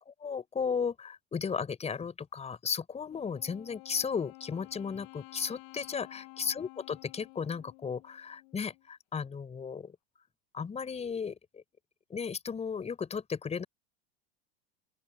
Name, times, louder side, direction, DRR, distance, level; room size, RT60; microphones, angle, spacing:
voice 1, 0.0-10.0 10.5-11.6 12.1-13.6, left 6 dB, 20° left, 4.9 m, -35 dB
Wind instrument woodwind instrument, 3.1-8.8, left 30 dB, 60° left, 6.9 m, -52 dB
open air
supercardioid pair, 120°, 34 cm